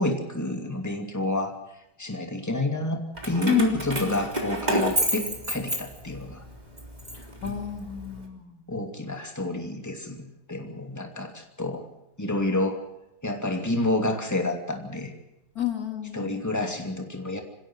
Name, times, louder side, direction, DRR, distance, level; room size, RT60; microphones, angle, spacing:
voice 1, 0.0-1.6 2.0-6.4 8.7-11.9 12.2-12.8 13.2-15.1 16.1-17.4, left 2 dB, 10° left, 4 dB, 2.6 m, -29 dB
Keys jangling, 3.2-6.3 6.8-8.1, right 1 dB, 25° right, 3.7 m, -29 dB
voice 2, 3.5-4.2 7.1-8.6 15.6-16.4, left 10 dB, 65° left, 5 dB, 2.4 m, -30 dB
27.0 x 16.0 x 6.2 m, 0.89 s
omnidirectional pair, 1.8 m